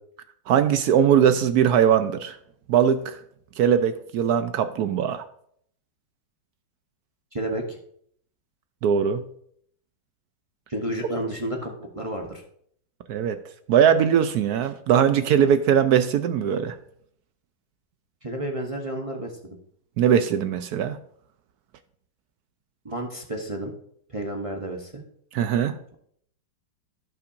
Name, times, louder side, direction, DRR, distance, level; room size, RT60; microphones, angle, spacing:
voice 1, 0.5-2.4 2.7-3.2 3.6-5.2 8.8-9.2 13.1-13.4 13.7-16.7 20.0-21.0 25.3-25.8, right 8 dB, 70° right, 0.9 m, -20 dB
voice 2, 7.3-7.8 10.7-12.4 18.2-19.6 22.8-23.7 24.1-25.0, right 1 dB, 30° right, 0.6 m, -31 dB
16.0 x 5.7 x 2.6 m
omnidirectional pair, 2.1 m